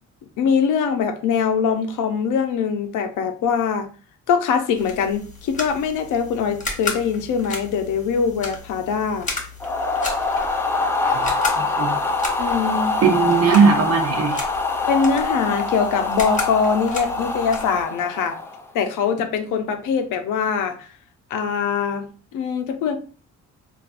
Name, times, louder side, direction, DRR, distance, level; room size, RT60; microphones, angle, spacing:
voice 1, 0.4-3.9 4.3-9.3 12.4-13.0 14.9-18.4 18.7-20.9 21.3-22.1 22.3-23.0, left 6 dB, 85° left, 0.6 m, -22 dB
sound 1, 4.7-17.8, left 4 dB, 25° left, 1.0 m, -34 dB
sound 2, 9.6-18.7, left 3 dB, 10° left, 0.3 m, -24 dB
voice 2, 11.6-12.0 13.0-14.4, right 6 dB, 50° right, 0.8 m, -18 dB
3.3 x 2.4 x 2.4 m
cardioid pair, 90°, 30 cm